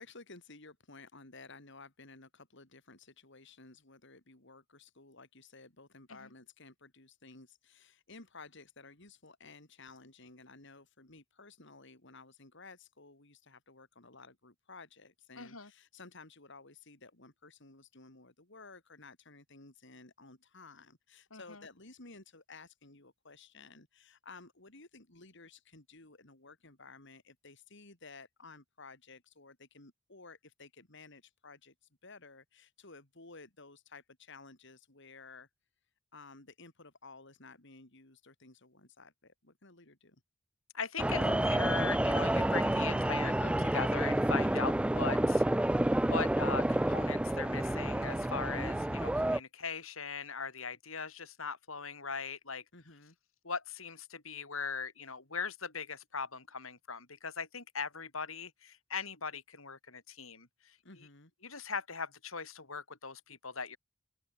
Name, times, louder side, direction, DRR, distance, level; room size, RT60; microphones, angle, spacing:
voice 1, 0.0-35.5 36.1-40.2 48.5-48.9 52.7-53.2 60.8-61.3, left 3 dB, 60° left, 4.1 m, -54 dB
voice 2, 15.4-15.7 21.3-21.7 40.7-52.6 53.4-61.1 61.4-63.8, left 5 dB, 85° left, 6.2 m, -40 dB
sound 1, 41.0-49.4, right 1 dB, 5° right, 0.3 m, -29 dB
open air
head